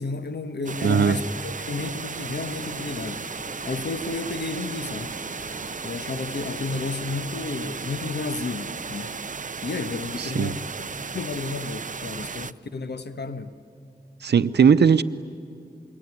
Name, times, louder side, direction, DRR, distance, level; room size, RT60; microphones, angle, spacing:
voice 1, 0.0-3.2 3.6-5.2 5.8-9.2 9.6-10.9 11.1-13.5, left 3 dB, 85° left, 1.3 m, -32 dB
sound 1, 0.7-12.5, right 5 dB, 50° right, 0.6 m, -35 dB
voice 2, 0.8-1.2 10.2-10.5 14.2-15.0, right 6 dB, 90° right, 0.7 m, -18 dB
sound 2, 1.6-8.2, right 1 dB, 15° right, 7.8 m, -53 dB
sound 3, 2.1-7.3, left 1 dB, 65° left, 5.7 m, -45 dB
27.0 x 22.5 x 9.7 m
cardioid pair, 40°, 17 cm